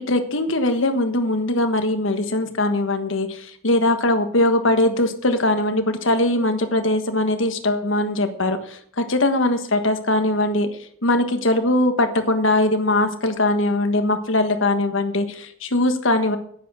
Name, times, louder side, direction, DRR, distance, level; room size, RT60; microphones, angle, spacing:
voice 1, 0.1-10.7 11.0-16.4, left 1 dB, 70° left, 7 dB, 1.4 m, -21 dB
10.0 x 10.0 x 6.3 m, 0.63 s
head